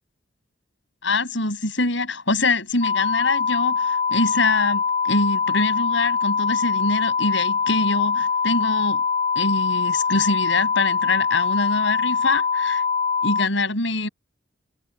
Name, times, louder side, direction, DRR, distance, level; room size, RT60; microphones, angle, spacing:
voice 1, 1.0-9.0 9.3-12.8 13.2-14.1, left 3 dB, 70° left, 6.4 m, -24 dB
sound 1, 2.8-13.5, left 5 dB, 35° left, 3.2 m, -23 dB
head